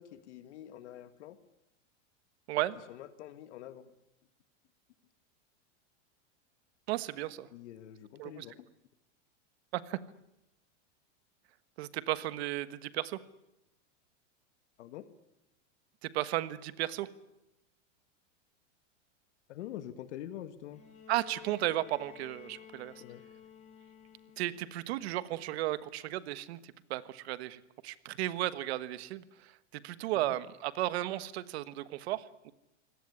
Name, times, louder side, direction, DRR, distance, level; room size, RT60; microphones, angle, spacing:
voice 1, 0.0-1.4 2.9-3.9 7.5-8.7 14.8-15.0 19.5-20.8 23.0-23.2 30.1-30.3, left 12 dB, 65° left, 11 dB, 1.7 m, -46 dB
voice 2, 6.9-7.5 8.2-8.4 9.7-10.0 11.8-13.2 16.0-17.1 21.1-23.0 24.4-32.5, right 15 dB, 55° right, 15 dB, 1.4 m, -34 dB
Bowed string instrument, 20.7-24.7 26.0-26.1, left 9 dB, 20° left, 4.9 m, -53 dB
25.0 x 18.0 x 9.7 m, 0.90 s
supercardioid pair, 160°, 37 cm